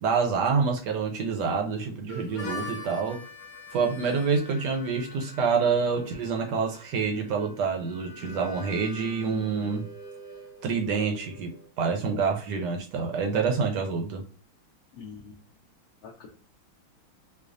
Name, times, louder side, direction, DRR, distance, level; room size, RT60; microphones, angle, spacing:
voice 1, 0.0-3.2 3.7-9.9 10.6-14.2, right 5 dB, 70° right, 3 dB, 1.0 m, -27 dB
Harmonica, 2.1-11.7, left 2 dB, 30° left, 0.8 m, -44 dB
voice 2, 14.9-15.4 16.0-16.3, left 6 dB, 80° left, -1 dB, 0.8 m, -44 dB
4.7 x 2.3 x 2.5 m, 0.41 s
omnidirectional pair, 2.3 m